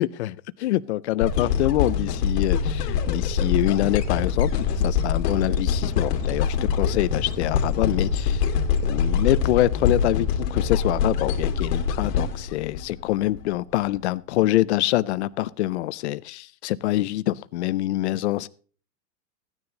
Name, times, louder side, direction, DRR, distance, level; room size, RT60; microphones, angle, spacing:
voice 1, 0.0-8.4 8.8-18.5, left 16 dB, 45° left, 0.5 m, -25 dB
sound 1, 1.2-13.4 14.0-14.1, left 6 dB, 75° left, 2.1 m, -24 dB
16.0 x 9.7 x 3.9 m
supercardioid pair, 170°, 48 cm